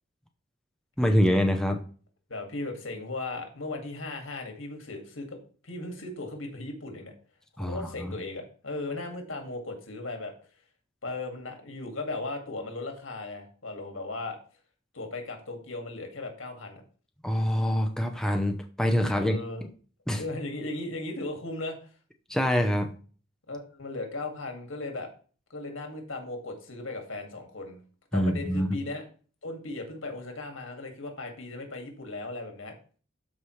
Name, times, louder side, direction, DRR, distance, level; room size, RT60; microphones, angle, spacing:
voice 1, 1.0-1.8 7.6-8.1 17.2-19.4 20.1-20.2 22.3-22.9 28.1-28.8, equal, 5° left, 4 dB, 0.7 m, -25 dB
voice 2, 2.3-5.3 5.6-7.1 7.6-10.3 11.0-14.4 14.9-16.8 19.1-19.6 20.2-21.9 23.5-25.1 25.5-27.8 28.1-29.0 29.4-32.8, left 2 dB, 85° left, 4 dB, 2.1 m, -37 dB
12.5 x 4.8 x 3.2 m, 0.40 s
head